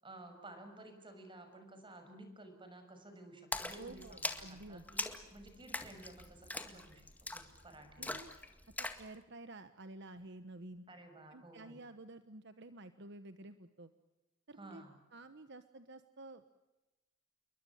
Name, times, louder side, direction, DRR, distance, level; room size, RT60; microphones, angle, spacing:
voice 1, 0.0-8.2 10.9-11.8 14.6-15.0, right 2 dB, 25° right, 7 dB, 6.4 m, -54 dB
Splash splatter, 3.5-9.1, left 2 dB, 10° left, 2.0 m, -42 dB
voice 2, 3.8-4.9 8.0-8.3 8.8-10.8 11.3-13.9 14.5-14.8 15.1-16.6, right 2 dB, 60° right, 11 dB, 1.2 m, -51 dB
29.0 x 23.0 x 7.3 m, 1.0 s
head